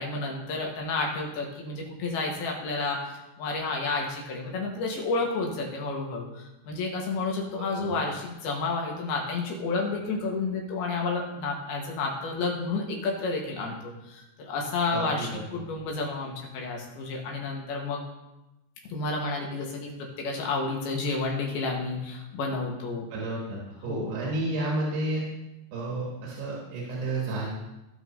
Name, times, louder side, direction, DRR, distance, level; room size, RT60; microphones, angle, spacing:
voice 1, 0.0-3.0 3.4-18.0 18.9-23.1 23.9-24.2, left 3 dB, 75° left, -1 dB, 3.1 m, -31 dB
voice 2, 7.6-8.0 14.9-15.4 23.1-25.2 25.7-27.5, right 2 dB, 75° right, -4 dB, 3.9 m, -31 dB
17.0 x 6.2 x 2.7 m, 0.96 s
omnidirectional pair, 4.8 m